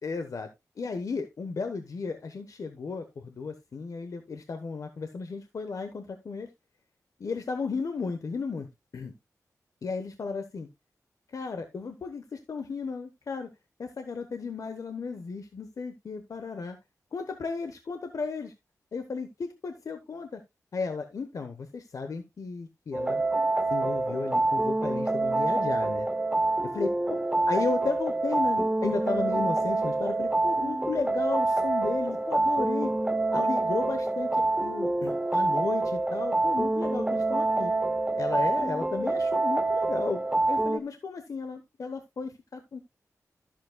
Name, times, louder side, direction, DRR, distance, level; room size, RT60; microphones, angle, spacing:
voice 1, 0.0-0.5 0.8-6.5 7.2-8.7 8.9-9.1 9.8-10.7 11.3-13.5 13.8-16.8 17.1-18.5 18.9-20.4 20.7-23.2 23.7-26.1 26.7-32.9 33.3-37.7 38.2-40.2 40.5-42.9, left 4 dB, 65° left, 7 dB, 1.0 m, -34 dB
sound 1, 22.9-40.8, right 2 dB, 15° right, 0.6 m, -26 dB
13.5 x 7.5 x 2.3 m, 0.21 s
wide cardioid pair, 80°, 6 cm